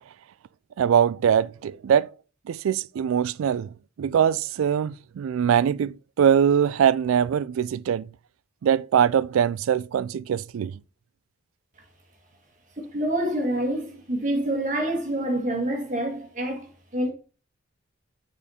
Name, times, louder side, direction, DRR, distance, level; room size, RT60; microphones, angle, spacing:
voice 1, 0.8-2.1 2.5-3.7 4.0-8.1 8.6-10.7, right 8 dB, 85° right, 0.3 m, -22 dB
voice 2, 12.8-17.1, right 1 dB, 40° right, 1.7 m, -27 dB
7.1 x 5.1 x 4.2 m
head